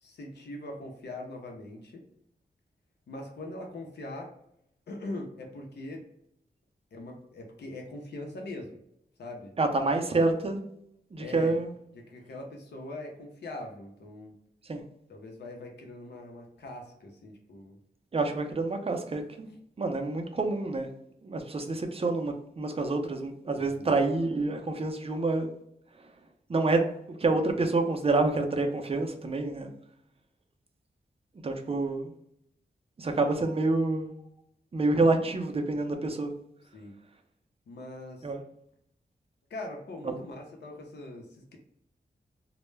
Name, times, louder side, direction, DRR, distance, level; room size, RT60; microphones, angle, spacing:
voice 1, 0.0-2.0 3.1-4.3 4.9-6.0 6.9-8.8 9.2-9.5 11.2-11.6 11.9-14.4 15.1-17.8 23.5-23.9 36.7-36.9 37.7-38.3 39.5-41.6, left 2 dB, 80° left, 1 dB, 0.6 m, -41 dB
voice 2, 9.6-10.6 11.1-11.7 14.7-14.8 18.1-19.5 19.8-20.9 21.2-25.5 26.5-26.8 27.2-29.7 31.4-32.1 33.0-34.1 34.7-36.3 38.2-38.4 40.0-40.2, right 3 dB, 35° right, 4 dB, 0.5 m, -27 dB
2.2 x 2.0 x 3.1 m, 0.74 s
wide cardioid pair, 75°, 17 cm